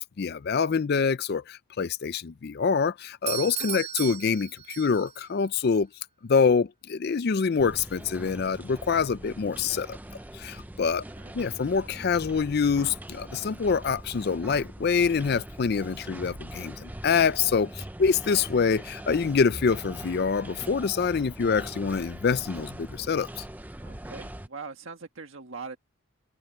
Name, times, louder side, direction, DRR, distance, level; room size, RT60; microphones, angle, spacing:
voice 1, 0.2-5.9 6.2-10.0 10.3-11.0 11.3-23.4, left 5 dB, 45° left, 0.4 m, -25 dB
Doorbell, 3.3-5.3, right 10 dB, 30° right, 1.1 m, -35 dB
sound 1, 7.6-24.5, right 1 dB, 10° right, 0.5 m, -42 dB
voice 2, 10.9-11.3 23.8-25.8, right 4 dB, 60° right, 1.6 m, -42 dB
head